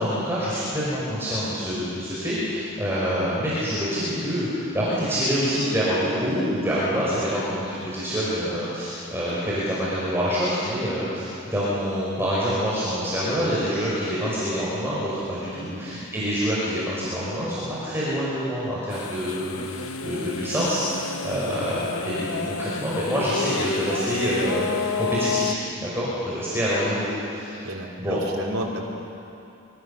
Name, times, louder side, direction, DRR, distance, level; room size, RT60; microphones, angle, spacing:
voice 1, 0.0-27.6 28.0-28.2, equal, 10° right, -9 dB, 5.1 m, -26 dB
voice 2, 15.7-16.0 27.6-28.8, right 1 dB, 80° right, -3 dB, 4.0 m, -32 dB
sound 1, 18.9-25.6, left 5 dB, 70° left, 0.9 m, -31 dB
25.5 x 23.5 x 7.0 m, 2.9 s
head